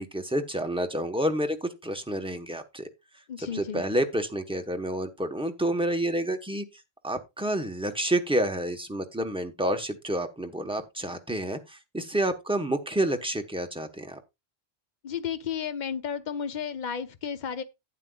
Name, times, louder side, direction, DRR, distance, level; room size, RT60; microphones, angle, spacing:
voice 1, 0.0-2.9 3.4-6.6 7.0-14.2, right 1 dB, 5° right, 1.1 m, -29 dB
voice 2, 3.3-3.8 15.0-17.6, left 7 dB, 50° left, 0.9 m, -33 dB
12.0 x 9.1 x 2.4 m
omnidirectional pair, 1.1 m